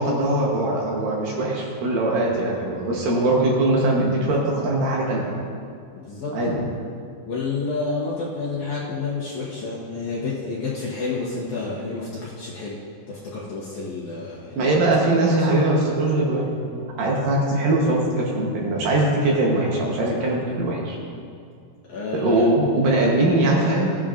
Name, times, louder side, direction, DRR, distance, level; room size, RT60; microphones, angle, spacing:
voice 1, 0.0-5.3 6.3-6.7 14.6-21.0 22.1-23.9, right 2 dB, 70° right, -3 dB, 2.5 m, -21 dB
voice 2, 5.9-6.6 7.3-12.8 13.1-14.7 15.1-15.3 19.2-19.3 21.9-22.5, left 3 dB, 65° left, -7 dB, 2.0 m, -30 dB
15.5 x 8.9 x 2.5 m, 2.3 s
omnidirectional pair, 4.7 m